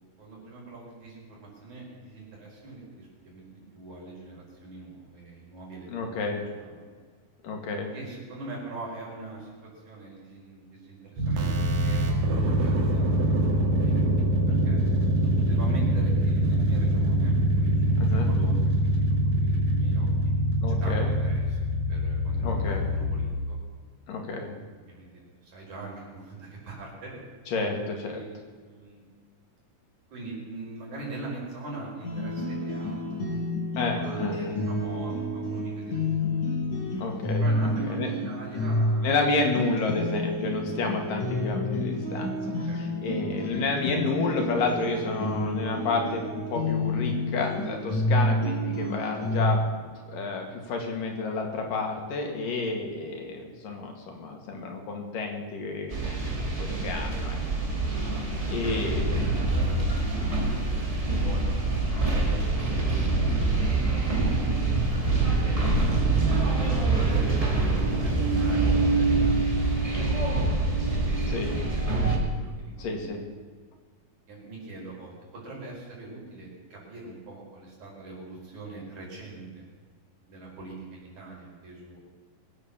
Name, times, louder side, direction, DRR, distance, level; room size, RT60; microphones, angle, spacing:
voice 1, 0.0-6.3 6.6-6.9 7.9-11.5 11.8-13.9 14.2-14.8 15.4-20.1 20.8-23.6 24.9-27.2 28.0-28.3 28.6-29.0 30.1-33.3 33.9-36.4 37.4-39.3 42.4-42.9 55.8-55.9 56.3-56.4 58.1-58.8 59.1-61.7 62.1-66.2 66.9-70.7 70.9-73.1 74.3-79.7 80.3-82.2, right 3 dB, 60° right, -3 dB, 6.2 m, -43 dB
voice 2, 5.9-6.4 7.4-7.9 18.0-18.3 20.6-21.1 22.4-22.8 24.1-24.5 27.5-28.2 33.8-34.6 37.0-38.1 39.0-49.6 50.1-57.4 58.5-59.2 71.3-71.5 72.8-73.2, left 3 dB, 90° left, 2 dB, 3.9 m, -30 dB
sound 1, 11.2-23.3, right 1 dB, 85° right, 3.8 m, -24 dB
sound 2, 32.0-49.6, left 1 dB, 70° left, 6.3 m, -29 dB
sound 3, 55.9-72.2, right 3 dB, 15° right, 2.0 m, -25 dB
22.0 x 8.6 x 7.2 m, 1.5 s
omnidirectional pair, 3.8 m